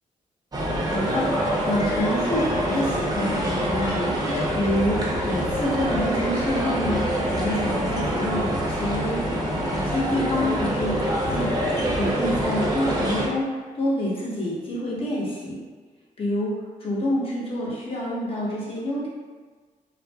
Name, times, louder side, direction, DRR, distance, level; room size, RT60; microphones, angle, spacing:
sound 1, 0.5-13.3, equal, 25° right, 0.6 m, -25 dB
voice 1, 0.9-9.4 9.7-15.6 16.2-16.5 16.8-19.1, left 1 dB, 40° left, -6 dB, 0.9 m, -28 dB
2.6 x 2.5 x 2.2 m, 1.4 s
cardioid pair, 80°, 15 cm